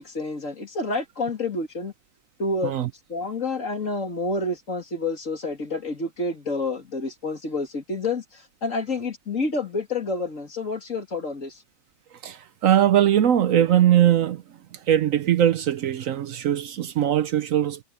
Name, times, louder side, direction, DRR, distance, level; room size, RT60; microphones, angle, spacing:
voice 1, 0.0-1.9 2.4-2.7 3.1-11.6, left 3 dB, 55° left, 3.0 m, -29 dB
voice 2, 12.2-14.4 14.9-17.8, right 10 dB, 65° right, 1.0 m, -20 dB
omnidirectional pair, 1.6 m